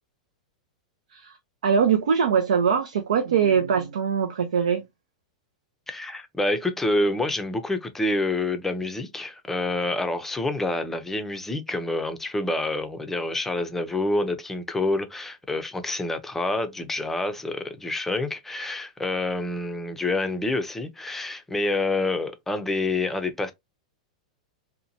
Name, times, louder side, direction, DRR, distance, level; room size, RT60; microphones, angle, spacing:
voice 1, 1.6-4.8, right 7 dB, 80° right, 0.5 m, -22 dB
voice 2, 5.9-23.5, left 2 dB, 10° left, 0.5 m, -27 dB
2.8 x 2.2 x 2.6 m
hypercardioid pair, 120°, 4 cm